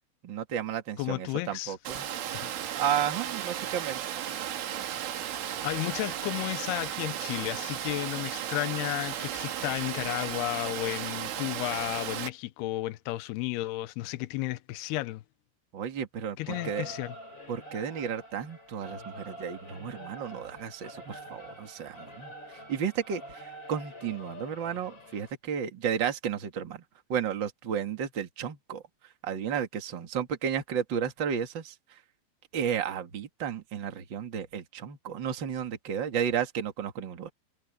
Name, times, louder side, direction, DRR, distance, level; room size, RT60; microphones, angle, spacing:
voice 1, 0.2-2.1 2.7-4.0 15.7-16.9 17.5-26.8 27.1-32.0 32.5-37.3, right 8 dB, 45° right, 1.6 m, -33 dB
voice 2, 1.0-1.8 2.4-2.5 3.7-3.8 5.6-15.2 16.4-17.1, left 18 dB, 80° left, 2.4 m, -33 dB
Water, 1.9-12.3, right 10 dB, 80° right, 4.7 m, -35 dB
Singing / Musical instrument, 16.4-25.3, equal, 25° left, 5.7 m, -46 dB
omnidirectional pair, 5.5 m